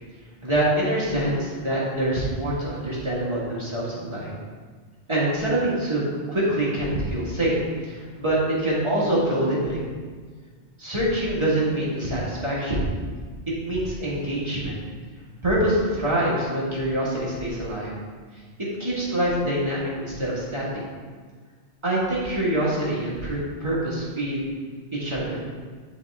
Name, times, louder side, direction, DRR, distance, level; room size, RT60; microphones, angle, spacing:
voice 1, 0.4-4.3 5.1-7.6 7.8-9.9 10.8-12.9 13.6-14.8 15.4-17.9 18.6-20.6 21.8-24.5 25.0-25.4, right 1 dB, 25° right, -8 dB, 1.8 m, -25 dB
10.5 x 3.7 x 3.5 m, 1.5 s
omnidirectional pair, 1.2 m